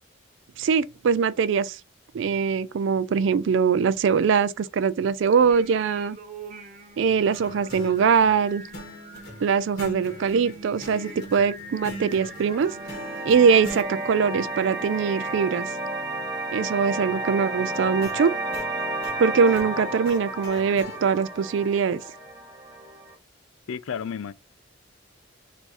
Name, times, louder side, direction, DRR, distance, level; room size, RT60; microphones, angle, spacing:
voice 1, 0.6-1.8 2.1-6.2 7.0-8.6 9.4-12.7 13.3-15.7 16.5-18.3 19.2-22.0, right 6 dB, 70° right, 0.3 m, -22 dB
Singing, 5.3-15.4, right 2 dB, 40° right, 0.7 m, -44 dB
sound 1, 7.3-13.9 17.6-21.0, equal, 50° left, 1.5 m, -41 dB
sound 2, 12.1-23.1, right 2 dB, 20° right, 1.1 m, -32 dB
voice 2, 23.7-24.3, left 7 dB, 85° left, 0.4 m, -31 dB
4.6 x 2.6 x 4.2 m
head